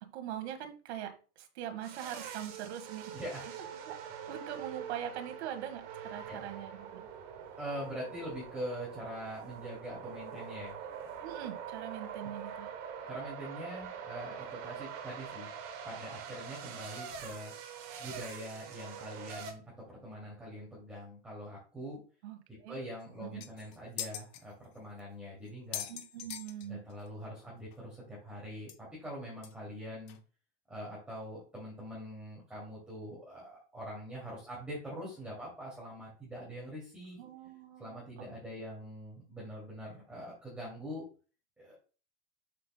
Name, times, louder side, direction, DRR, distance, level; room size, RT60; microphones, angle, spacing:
voice 1, 0.0-3.1 3.9-4.0 4.3-7.0 11.2-12.7 22.2-22.8 23.2-23.4 25.9-26.8 37.2-38.3 38.5-38.8, right 10 dB, 70° right, 6 dB, 1.5 m, -42 dB
sound 1, 1.8-19.5, right 7 dB, 40° right, 1.5 m, -44 dB
voice 2, 3.1-3.5 6.3-6.4 7.6-10.8 12.2-12.3 13.1-15.5 15.8-17.5 18.0-19.6 19.9-22.0 22.5-25.9 26.6-30.2 30.7-37.2 37.8-41.1 41.6-41.8, equal, 5° right, -6 dB, 2.5 m, -43 dB
sound 2, 23.0-23.1 23.4-24.4 25.0-25.1 25.5-27.1 27.4-27.5 27.7-27.8 28.7-28.8 29.4-29.5 30.1-30.2, left 11 dB, 40° left, 0.9 m, -41 dB
7.5 x 6.7 x 2.2 m, 0.36 s
supercardioid pair, 155°, 35 cm